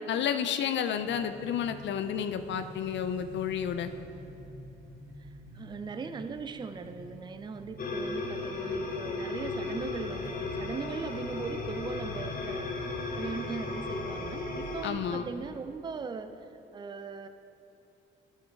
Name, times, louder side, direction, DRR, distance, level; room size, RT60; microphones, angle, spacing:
voice 1, 0.1-3.9 14.8-15.3, left 8 dB, 65° left, 9 dB, 0.5 m, -31 dB
sound 1, 0.9-15.2, equal, 80° right, 1.5 m, -47 dB
voice 2, 5.5-12.7 13.2-16.3 16.7-17.3, right 5 dB, 20° right, 9 dB, 0.4 m, -39 dB
sound 2, 7.8-14.9, left 3 dB, 45° left, 1.1 m, -35 dB
11.0 x 6.5 x 3.5 m, 2.8 s
cardioid pair, 90°, 20 cm